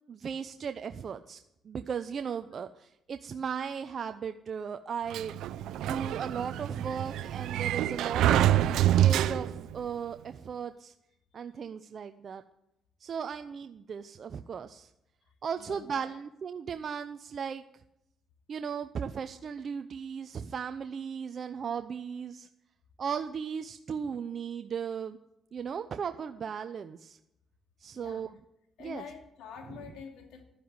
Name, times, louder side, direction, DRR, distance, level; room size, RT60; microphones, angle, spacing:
voice 1, 0.1-1.4 1.6-5.3 5.8-10.9 11.3-12.4 13.0-14.9 15.4-17.6 18.5-22.5 23.0-25.2 25.5-27.2 27.8-28.4 28.8-29.1 29.7-29.8, right 7 dB, 50° right, 8 dB, 0.7 m, -36 dB
Sliding door, 5.1-9.8, right 12 dB, 85° right, 0.7 m, -26 dB
voice 2, 15.6-16.1 27.9-28.2 28.8-30.4, left 7 dB, 90° left, 4 dB, 2.8 m, -46 dB
12.0 x 10.0 x 9.6 m, 0.82 s
cardioid pair, 90°, 0 cm